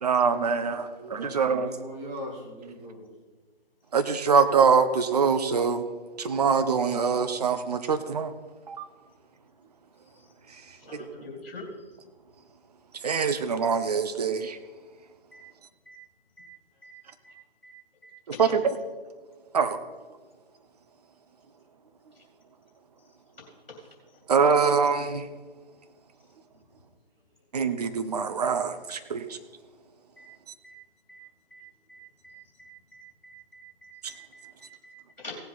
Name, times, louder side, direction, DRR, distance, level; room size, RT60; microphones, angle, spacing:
voice 1, 0.0-1.7 3.9-5.8 6.2-8.3 8.7-8.8 13.0-14.6 18.4-18.6 19.5-19.8 24.3-25.3 27.5-29.4, right 5 dB, 45° right, 9 dB, 0.9 m, -24 dB
voice 2, 0.8-3.1 10.8-11.4, equal, 15° right, -2 dB, 2.3 m, -41 dB
voice 3, 10.7-11.7 15.3-15.4 15.9-16.0 16.4-16.5 16.8-16.9 17.2-17.3 17.6-17.7 18.0-18.5 22.1-22.2 23.4-23.8 30.2-30.3 30.6-30.8 31.1-31.2 31.5-31.6 31.9-35.4, left 1 dB, 65° left, 0 dB, 3.0 m, -46 dB
16.5 x 7.7 x 4.2 m, 1.4 s
figure-of-eight pair, 135°, 29 cm